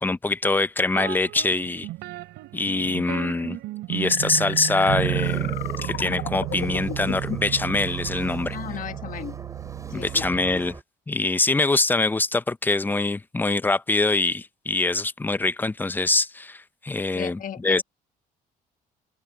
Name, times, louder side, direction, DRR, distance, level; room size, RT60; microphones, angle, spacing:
voice 1, 0.0-1.9 2.5-3.6 3.9-8.6 9.9-10.8 11.1-17.8, left 3 dB, 10° left, 0.5 m, -24 dB
sound 1, 1.0-10.7, right 17 dB, 85° right, 4.6 m, -32 dB
sound 2, 4.0-7.6, left 14 dB, 75° left, 1.1 m, -35 dB
sound 3, 4.9-10.8, right 3 dB, 20° right, 5.1 m, -42 dB
voice 2, 8.5-9.4 9.9-10.2 17.1-17.8, left 9 dB, 50° left, 1.5 m, -35 dB
open air
cardioid pair, 110°, 17 cm